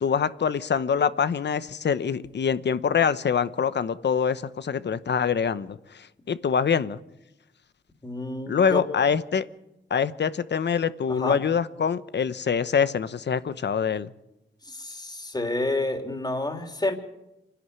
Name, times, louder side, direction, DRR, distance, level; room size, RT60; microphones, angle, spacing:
voice 1, 0.0-7.0 8.5-9.4 9.9-14.1, left 6 dB, 65° left, 14 dB, 1.0 m, -25 dB
voice 2, 8.0-8.8 11.1-11.4 14.6-16.9, left 2 dB, 20° left, 5 dB, 3.3 m, -29 dB
27.0 x 11.5 x 9.7 m, 0.90 s
cardioid pair, 85°, 19 cm